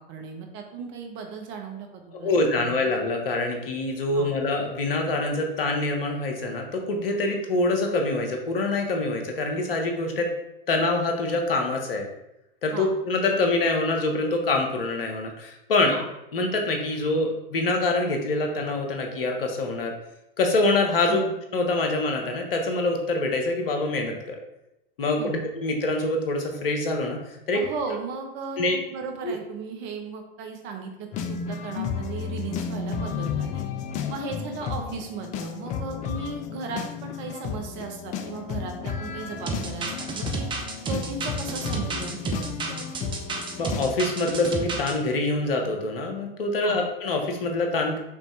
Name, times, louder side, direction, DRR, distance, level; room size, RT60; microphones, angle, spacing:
voice 1, 0.1-2.7 4.1-4.3 12.7-12.9 15.9-16.0 21.1-21.3 25.2-25.4 27.5-33.6 34.1-40.5 40.8-43.1 46.6-46.8, right 4 dB, 40° right, 4 dB, 0.9 m, -36 dB
voice 2, 2.1-10.3 10.7-12.1 12.6-16.0 16.3-19.9 20.4-21.2 21.5-24.4 25.0-27.6 28.6-28.8 29.2-29.4 43.6-48.0, left 2 dB, 70° left, 3 dB, 1.1 m, -25 dB
sound 1, 31.1-43.9, left 7 dB, 25° left, 0.4 m, -33 dB
sound 2, 39.5-44.9, right 4 dB, 15° right, 0.6 m, -31 dB
5.2 x 3.2 x 3.2 m, 0.88 s
hypercardioid pair, 100°, 29 cm